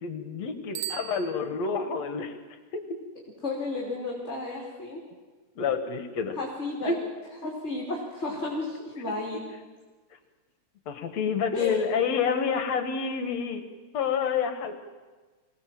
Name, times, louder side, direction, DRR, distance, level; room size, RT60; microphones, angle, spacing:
voice 1, 0.0-2.4 2.7-3.0 5.6-6.4 6.8-7.0 9.1-9.2 10.9-13.6 13.9-14.7, left 6 dB, 65° left, 8 dB, 2.4 m, -28 dB
Bicycle bell, 0.7-2.0, right 13 dB, 65° right, 1.7 m, -39 dB
voice 2, 3.4-5.0 6.3-7.0 7.4-9.5 11.5-11.8, left 2 dB, 20° left, -3 dB, 3.2 m, -32 dB
24.5 x 18.0 x 7.6 m, 1.3 s
omnidirectional pair, 3.4 m